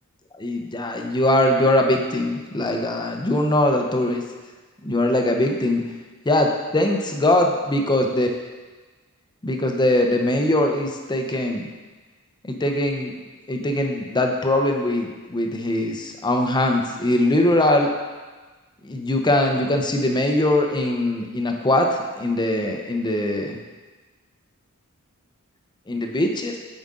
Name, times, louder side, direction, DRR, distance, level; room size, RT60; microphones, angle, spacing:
voice 1, 0.4-4.2 4.8-5.8 6.3-8.3 9.4-11.7 12.5-13.1 13.5-17.9 18.9-21.9 22.2-23.6 25.9-26.6, left 1 dB, 20° left, 3 dB, 0.7 m, -21 dB
9.2 x 5.1 x 3.8 m, 1.3 s
head